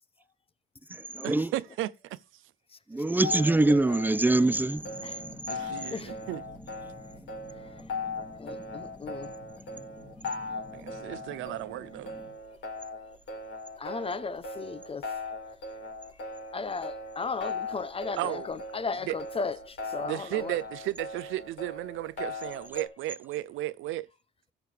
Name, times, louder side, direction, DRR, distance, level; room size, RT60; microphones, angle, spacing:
voice 1, 1.2-2.2 5.5-6.4 10.7-12.2 18.2-18.6 19.0-19.2 20.0-24.1, right 15 dB, 85° right, 0.5 m, -34 dB
voice 2, 2.9-4.8, right 2 dB, 10° right, 0.5 m, -23 dB
sound 1, 3.2-22.9, left 3 dB, 70° left, 3.9 m, -39 dB
sound 2, 4.3-12.3, left 2 dB, 10° left, 2.2 m, -49 dB
voice 3, 8.4-9.3 13.8-15.0 16.5-20.6, left 4 dB, 30° left, 0.8 m, -35 dB
13.5 x 6.6 x 3.3 m
cardioid pair, 90°, 20 cm